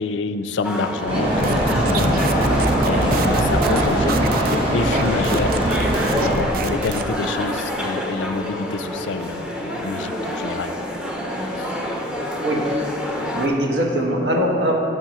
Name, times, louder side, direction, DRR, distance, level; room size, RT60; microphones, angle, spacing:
voice 1, 0.0-2.2 2.9-4.2 4.5-5.6 6.2-10.7, left 4 dB, 80° left, 11 dB, 0.4 m, -27 dB
sound 1, 0.6-13.5, equal, 5° right, 0.7 m, -27 dB
sound 2, 1.1-6.4, right 1 dB, 30° right, 1.3 m, -21 dB
sound 3, 1.4-7.1, right 4 dB, 50° right, 0.3 m, -29 dB
voice 2, 5.6-6.1 12.4-12.6 13.3-14.7, right 1 dB, 70° right, 0 dB, 1.2 m, -22 dB
12.0 x 7.0 x 3.1 m, 2.9 s
head